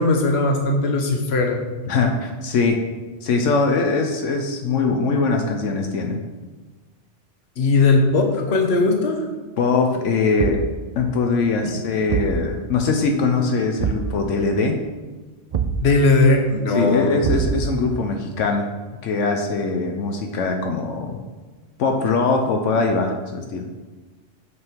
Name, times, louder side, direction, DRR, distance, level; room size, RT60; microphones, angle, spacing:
voice 1, 0.0-1.6 7.6-9.2 11.6-11.8 15.8-17.1, left 3 dB, 60° left, 2 dB, 1.3 m, -18 dB
voice 2, 1.9-2.8 3.2-6.2 9.6-10.6 10.9-14.8 16.7-18.7 19.0-21.2 21.8-23.7, left 4 dB, 80° left, 3 dB, 1.1 m, -21 dB
Thump thud, 10.4-10.8 12.1-12.4 13.8-14.2 15.5-15.9 17.2-17.8, right 6 dB, 85° right, 0.3 m, -24 dB
6.5 x 5.4 x 4.5 m, 1.3 s
omnidirectional pair, 1.3 m